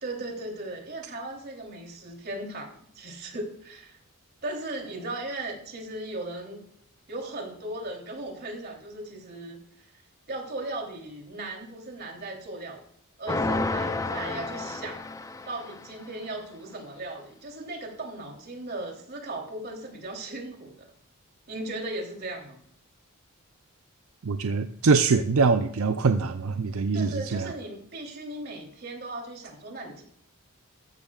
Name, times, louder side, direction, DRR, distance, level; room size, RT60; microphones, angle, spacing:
voice 1, 0.0-4.0 4.4-6.6 7.1-9.6 10.3-12.8 13.2-15.0 15.5-20.9 21.5-22.6 26.9-30.0, right 2 dB, 50° right, 0 dB, 3.2 m, -37 dB
sound 1, 13.3-16.0, left 2 dB, 15° left, 0.5 m, -30 dB
voice 2, 24.2-27.5, right 4 dB, 80° right, 8 dB, 0.6 m, -23 dB
14.0 x 12.0 x 2.4 m, 0.68 s
head